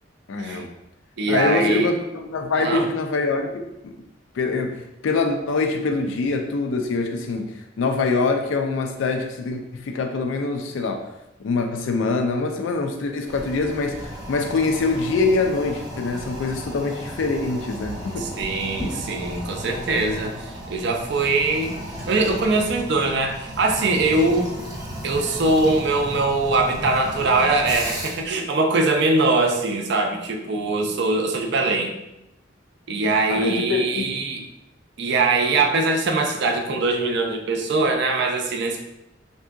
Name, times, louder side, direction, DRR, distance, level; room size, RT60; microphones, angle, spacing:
voice 1, 0.3-0.7 1.3-3.9 4.4-11.1 11.4-18.3 33.3-34.1, left 3 dB, 80° left, 4 dB, 0.4 m, -24 dB
voice 2, 1.2-1.9 2.6-2.9 18.2-24.5 25.0-31.9 32.9-34.4 35.0-38.8, right 3 dB, 65° right, 3 dB, 0.5 m, -22 dB
Toilet flush, 13.2-28.3, equal, 20° right, 0.8 m, -35 dB
3.5 x 2.7 x 2.3 m, 0.88 s
head